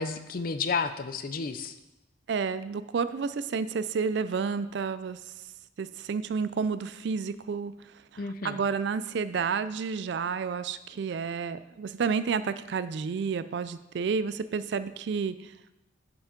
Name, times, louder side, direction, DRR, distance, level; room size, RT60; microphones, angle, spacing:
voice 1, 0.0-1.7 8.2-8.6, left 4 dB, 45° left, 10 dB, 0.5 m, -31 dB
voice 2, 2.3-5.2 5.8-7.7 8.4-15.5, right 5 dB, 60° right, 14 dB, 0.3 m, -30 dB
7.0 x 5.7 x 5.1 m, 0.91 s
head